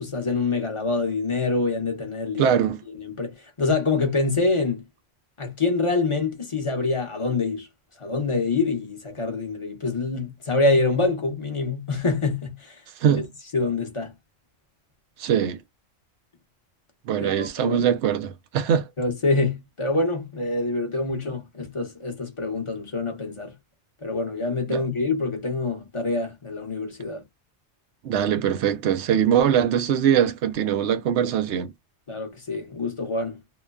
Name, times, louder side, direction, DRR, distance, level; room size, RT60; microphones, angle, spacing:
voice 1, 0.0-2.6 2.9-4.8 5.4-7.7 8.0-12.7 13.5-14.1 17.2-17.8 19.0-23.5 24.0-27.2 32.1-33.4, left 3 dB, 30° left, 0.9 m, -26 dB
voice 2, 2.4-2.8 13.0-13.3 15.2-15.6 17.1-18.9 24.7-24.8 28.0-31.7, right 9 dB, 90° right, 0.9 m, -22 dB
2.9 x 2.2 x 2.3 m
omnidirectional pair, 1.1 m